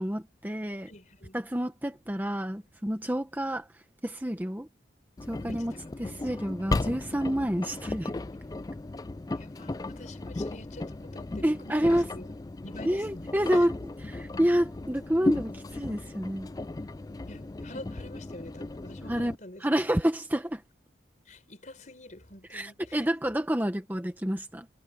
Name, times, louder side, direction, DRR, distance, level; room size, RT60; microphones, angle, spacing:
voice 1, 0.0-0.9 1.3-3.7 4.0-4.7 5.3-5.7 6.0-8.1 11.4-12.1 12.8-16.5 19.1-19.3 19.6-20.6 22.5-24.7, equal, 10° right, 1.0 m, -28 dB
voice 2, 0.9-1.4 5.4-6.2 9.4-12.3 12.6-13.7 17.3-19.8 21.3-23.0, left 1 dB, 40° left, 4.5 m, -47 dB
Engine, 5.2-19.4, left 2 dB, 20° left, 0.3 m, -36 dB
head